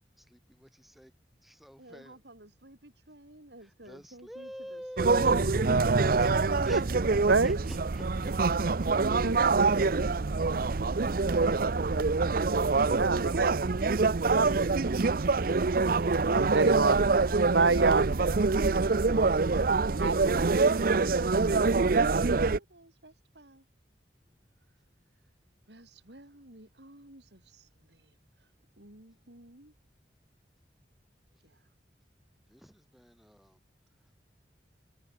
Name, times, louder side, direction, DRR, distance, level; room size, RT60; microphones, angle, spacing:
voice 1, 0.2-1.1 1.4-2.2 3.6-6.8 7.4-8.6 32.5-33.6, equal, ahead, 5.8 m, -47 dB
voice 2, 1.8-4.8 7.4-7.8 18.0-18.4 19.0-20.4 22.5-23.7 25.7-28.5 28.8-29.7 31.4-31.7, right 2 dB, 70° right, 5.3 m, -53 dB
sound 1, 5.0-22.6, right 4 dB, 55° right, 0.6 m, -25 dB
voice 3, 7.3-7.6 9.2-9.9 13.0-13.5 14.3-14.5 15.8-17.0 17.5-18.1 20.0-20.1, right 4 dB, 90° right, 1.1 m, -27 dB
head